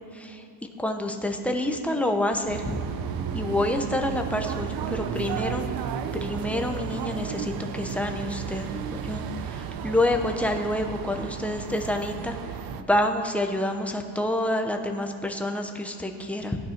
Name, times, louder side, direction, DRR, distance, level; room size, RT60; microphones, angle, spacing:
voice 1, 0.1-0.4 0.8-2.8 3.3-5.6 6.1-12.4 12.8-16.6, left 1 dB, 5° left, 3 dB, 0.7 m, -28 dB
sound 1, 2.5-12.8, right 8 dB, 50° right, 0.7 m, -33 dB
15.5 x 9.2 x 5.8 m, 2.9 s
cardioid pair, 175°, 45 cm